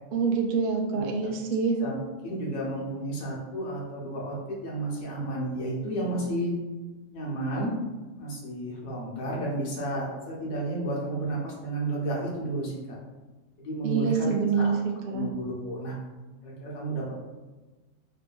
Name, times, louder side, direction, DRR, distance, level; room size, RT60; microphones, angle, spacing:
voice 1, 0.1-1.8 13.8-14.7 15.1-15.3, right 5 dB, 75° right, 1 dB, 0.4 m, -26 dB
voice 2, 0.9-1.3 1.8-2.0 2.2-6.5 7.1-7.7 8.2-13.0 13.6-14.7 15.1-15.9 16.4-17.1, right 1 dB, 80° left, -4 dB, 1.3 m, -32 dB
4.0 x 2.7 x 2.2 m, 1.2 s
omnidirectional pair, 1.5 m